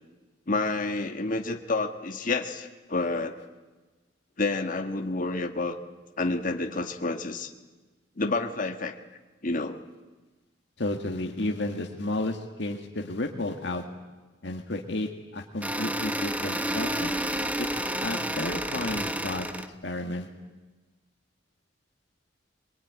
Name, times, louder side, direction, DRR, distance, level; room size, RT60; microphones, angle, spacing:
voice 1, 0.5-3.4 4.4-5.8 6.2-7.5 8.2-8.9 9.4-9.8, left 3 dB, 45° left, 5 dB, 1.5 m, -29 dB
voice 2, 10.8-13.8 14.4-17.7 18.0-19.5 19.8-20.3, left 2 dB, 70° left, 2 dB, 2.0 m, -32 dB
sound 1, 15.6-19.7, right 1 dB, 10° right, 1.2 m, -30 dB
23.5 x 23.0 x 9.6 m, 1.2 s
head